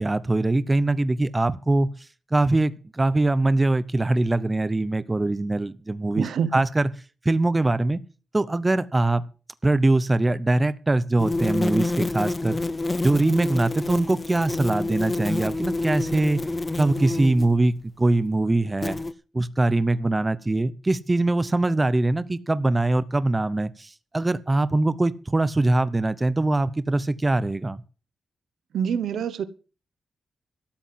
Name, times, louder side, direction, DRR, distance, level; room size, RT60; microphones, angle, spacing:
voice 1, 0.0-1.9 2.3-6.9 7.2-8.0 8.3-9.2 9.6-12.6 13.0-16.4 16.8-19.0 19.3-27.8, right 2 dB, 20° right, 0.7 m, -22 dB
voice 2, 6.1-6.6 28.7-29.5, right 7 dB, 85° right, 1.0 m, -26 dB
sound 1, 11.2-17.6 18.8-19.1, left 2 dB, 20° left, 0.6 m, -28 dB
13.0 x 7.7 x 7.6 m
wide cardioid pair, 120°, 0 cm